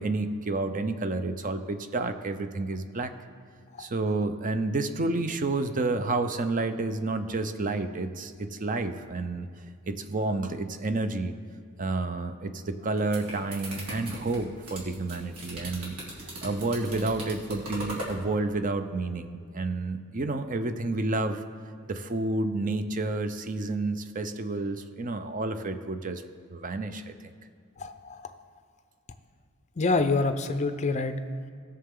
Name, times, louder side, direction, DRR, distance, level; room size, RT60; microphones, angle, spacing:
voice 1, 0.0-3.1 3.8-9.5 9.9-11.3 11.8-16.0 16.4-21.4 21.9-26.2 26.5-27.1, right 2 dB, 35° right, 9 dB, 0.6 m, -30 dB
sound 1, 12.8-18.2, right 1 dB, 90° right, 2.7 m, -39 dB
voice 2, 27.8-28.3 29.8-31.2, left 3 dB, 30° left, 9 dB, 0.5 m, -27 dB
18.0 x 6.8 x 3.8 m, 2.3 s
head